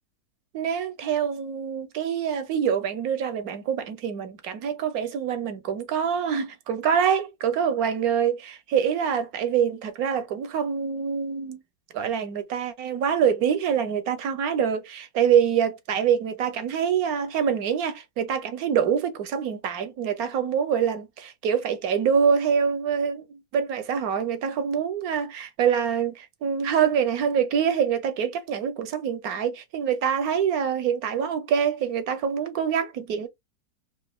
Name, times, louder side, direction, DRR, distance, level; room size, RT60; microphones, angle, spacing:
voice 1, 0.5-11.6 11.9-33.3, right 7 dB, 65° right, 1.0 m, -25 dB
5.0 x 2.5 x 2.2 m
omnidirectional pair, 2.1 m